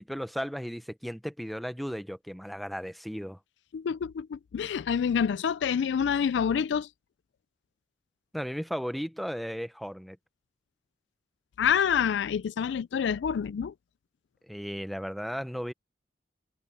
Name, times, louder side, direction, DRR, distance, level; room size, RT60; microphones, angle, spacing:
voice 1, 0.0-3.4 8.3-10.2 14.5-15.7, equal, ahead, 0.7 m, -35 dB
voice 2, 3.7-6.9 11.6-13.7, left 7 dB, 75° left, 0.3 m, -27 dB
head